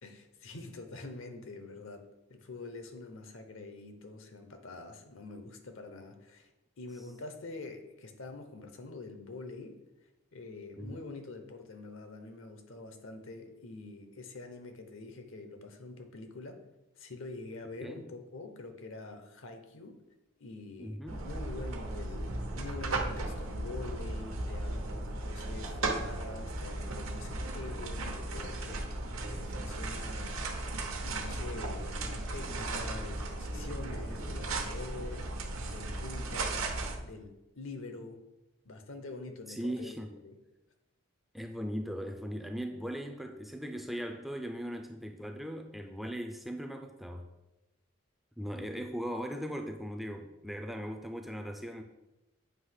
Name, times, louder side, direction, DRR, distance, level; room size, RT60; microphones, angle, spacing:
voice 1, 0.0-9.8 10.3-16.6 17.0-20.0 20.4-28.9 29.3-30.5 30.7-35.3 35.6-36.7 37.0-38.2 38.6-40.0 40.2-40.4, left 3 dB, 70° left, 6 dB, 0.8 m, -45 dB
voice 2, 20.8-21.2 39.5-40.1 41.3-47.2 48.4-51.8, equal, ahead, 4 dB, 0.3 m, -39 dB
sound 1, 21.1-37.0, right 2 dB, 80° right, 0.9 m, -36 dB
7.8 x 2.9 x 5.7 m, 0.98 s
head